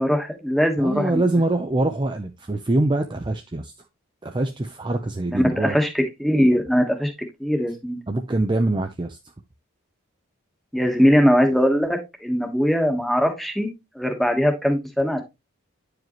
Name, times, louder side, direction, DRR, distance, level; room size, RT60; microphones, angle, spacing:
voice 1, 0.0-1.2 5.3-7.1 7.4-8.0 10.7-13.7 13.9-15.2, equal, ahead, 1.2 m, -20 dB
voice 2, 0.8-3.7 4.2-5.8 8.1-9.3, right 2 dB, 20° right, 0.4 m, -24 dB
9.3 x 4.9 x 3.0 m
head